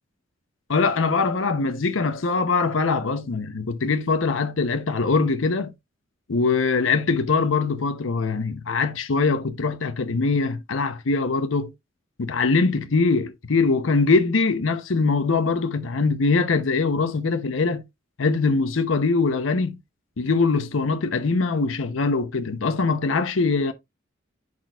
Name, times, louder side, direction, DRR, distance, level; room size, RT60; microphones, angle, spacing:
voice 1, 0.7-5.7 6.3-11.7 12.2-17.8 18.2-19.8 20.2-23.7, left 4 dB, 85° left, 0.7 m, -22 dB
10.5 x 4.2 x 2.3 m
head